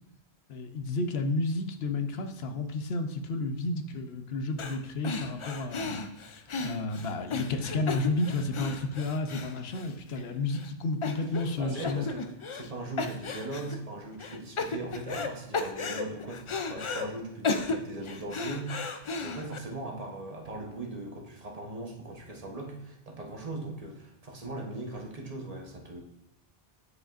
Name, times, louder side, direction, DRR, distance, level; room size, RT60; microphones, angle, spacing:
voice 1, 0.5-6.0 6.6-12.0 24.5-24.7, left 2 dB, 80° left, 7 dB, 0.9 m, -31 dB
sound 1, 4.6-4.8 5.0-10.2 10.5-10.7 11.0-11.6 11.8-12.7 13.0-13.8 14.2-15.3 15.5-17.1 17.4-19.6, left 4 dB, 50° left, 0.4 m, -34 dB
voice 2, 11.6-12.3 12.5-26.0, right 2 dB, 40° right, 1 dB, 1.1 m, -39 dB
9.6 x 5.0 x 2.5 m, 0.80 s
omnidirectional pair, 1.0 m